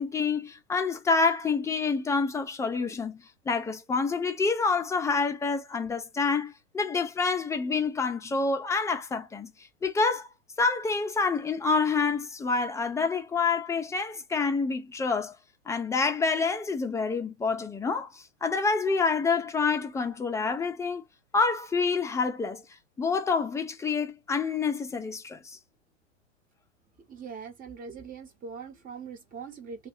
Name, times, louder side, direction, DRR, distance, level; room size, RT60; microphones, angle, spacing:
voice 1, 0.0-9.5 9.8-10.3 10.6-15.3 15.7-21.0 21.3-22.6 23.0-25.6, left 4 dB, 10° left, 0.6 m, -27 dB
voice 2, 27.1-29.9, right 5 dB, 20° right, 1.2 m, -42 dB
2.8 x 2.5 x 3.8 m
figure-of-eight pair, 105°, 37 cm